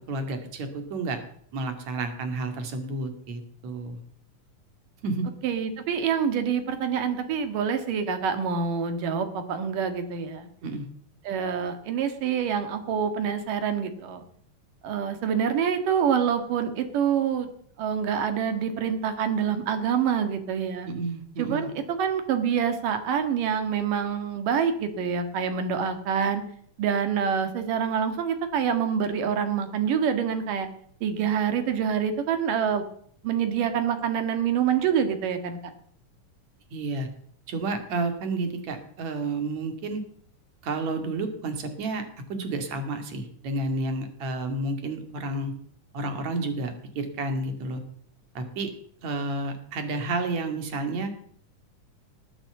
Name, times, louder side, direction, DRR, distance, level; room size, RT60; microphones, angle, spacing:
voice 1, 0.1-1.2 1.5-4.0 5.0-5.3 10.6-10.9 20.9-21.7 36.7-37.1 37.5-40.0 40.6-42.0 42.3-45.5 45.9-47.8 48.4-48.7 49.0-51.1, right 2 dB, 60° right, 6 dB, 3.3 m, -30 dB
voice 2, 5.4-10.5 11.3-14.2 14.8-17.5 17.8-20.9 21.4-26.4 26.8-30.7 31.0-32.8 33.2-35.6, right 7 dB, 80° right, 8 dB, 3.4 m, -26 dB
20.0 x 8.9 x 8.0 m, 0.62 s
omnidirectional pair, 3.7 m